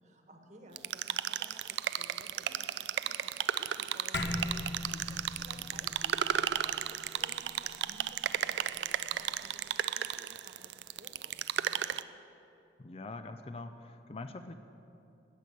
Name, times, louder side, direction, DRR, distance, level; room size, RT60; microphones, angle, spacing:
voice 1, 0.0-6.8 7.1-11.9, right 1 dB, 40° right, 3 dB, 1.4 m, -56 dB
sound 1, 0.8-12.0, right 10 dB, 70° right, 0.3 m, -34 dB
sound 2, 4.1-8.8, left 1 dB, 65° left, 0.9 m, -40 dB
voice 2, 12.8-14.6, left 2 dB, 30° left, 8 dB, 0.4 m, -43 dB
14.0 x 6.7 x 9.2 m, 2.7 s
head